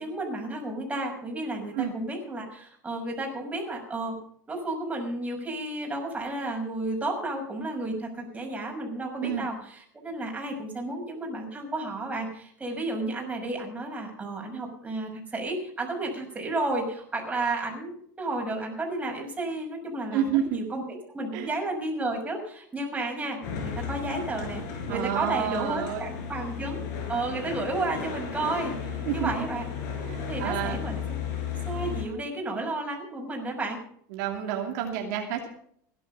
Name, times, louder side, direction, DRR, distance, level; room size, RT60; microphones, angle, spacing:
voice 1, 0.0-4.2 4.5-26.8 27.1-29.7 30.3-31.0 31.7-33.8, right 2 dB, 15° right, 1 dB, 6.0 m, -32 dB
voice 2, 20.1-20.6 21.3-21.5 24.9-26.0 29.1-29.3 30.0-30.8 34.1-35.5, right 9 dB, 70° right, 2 dB, 2.8 m, -29 dB
sound 1, 23.4-32.1, left 6 dB, 70° left, 5.0 m, -34 dB
17.0 x 11.5 x 5.6 m, 0.64 s
supercardioid pair, 120°, 10 cm